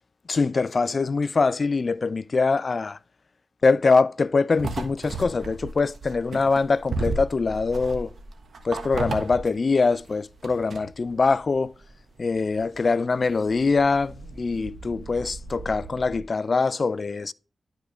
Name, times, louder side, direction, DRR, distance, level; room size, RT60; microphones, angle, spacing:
voice 1, 0.3-3.0 3.6-8.1 8.6-11.7 12.2-17.3, left 4 dB, 55° left, 0.4 m, -23 dB
sound 1, 4.5-16.2, right 3 dB, 70° right, 1.4 m, -36 dB
11.5 x 5.0 x 3.3 m
cardioid pair, 45°, 0 cm